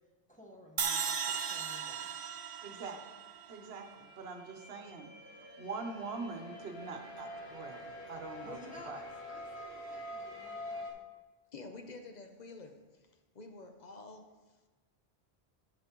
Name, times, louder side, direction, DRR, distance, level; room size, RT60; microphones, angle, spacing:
voice 1, 0.3-2.1 8.4-11.1, equal, 10° left, -2 dB, 1.2 m, -54 dB
sound 1, 0.8-4.0, right 7 dB, 45° right, 0.5 m, -37 dB
voice 2, 2.6-3.0 3.5-5.1 5.6-8.6 8.9-9.0, right 4 dB, 70° right, 5 dB, 1.1 m, -43 dB
sound 2, 3.8-10.9, left 1 dB, 85° left, 1.5 m, -46 dB
voice 3, 11.5-13.1 13.3-14.6, left 3 dB, 45° left, 5 dB, 0.8 m, -49 dB
10.5 x 7.1 x 3.0 m, 1.2 s
omnidirectional pair, 1.1 m